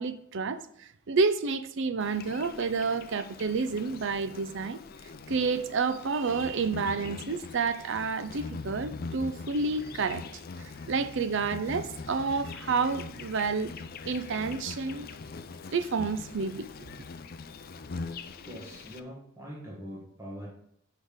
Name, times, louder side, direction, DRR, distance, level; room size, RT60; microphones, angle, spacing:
voice 1, 0.0-4.8 5.3-10.3 10.9-13.7 14.0-15.1 15.7-16.7, right 4 dB, 60° right, 0.5 m, -29 dB
Insect, 2.0-19.0, left 4 dB, 45° left, 0.5 m, -42 dB
voice 2, 18.4-20.5, equal, 15° right, 1.4 m, -43 dB
6.4 x 5.2 x 5.2 m
head